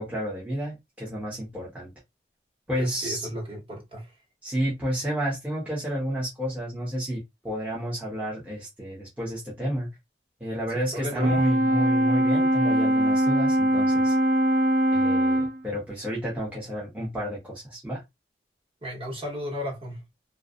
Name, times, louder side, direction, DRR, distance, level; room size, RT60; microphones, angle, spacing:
voice 1, 0.0-1.9 2.7-3.3 4.4-9.9 10.4-14.2 14.9-18.0, equal, 10° right, 0.6 m, -30 dB
voice 2, 2.8-4.1 10.7-11.4 18.8-20.0, equal, 30° right, 1.0 m, -34 dB
Brass instrument, 11.2-15.6, right 1 dB, 55° right, 0.4 m, -22 dB
2.5 x 2.3 x 2.3 m
head